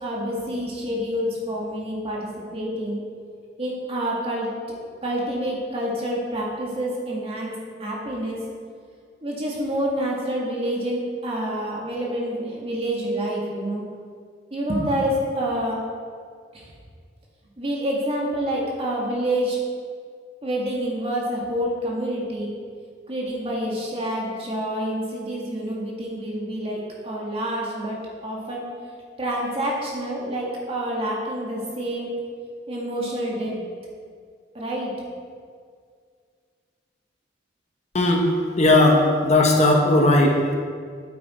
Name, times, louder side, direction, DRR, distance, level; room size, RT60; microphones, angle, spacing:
voice 1, 0.0-3.0 3.6-4.5 5.0-7.5 7.8-8.4 9.2-13.8 14.5-15.8 16.5-16.7 17.6-19.6 20.4-22.5 23.1-26.8 27.0-28.6 29.2-32.1 32.7-33.6 34.5-34.9, right 1 dB, 35° right, -4 dB, 2.0 m, -27 dB
voice 2, 37.9-38.3 38.6-40.6, left 1 dB, 40° left, 1 dB, 1.0 m, -17 dB
8.7 x 8.3 x 4.4 m, 2.1 s
head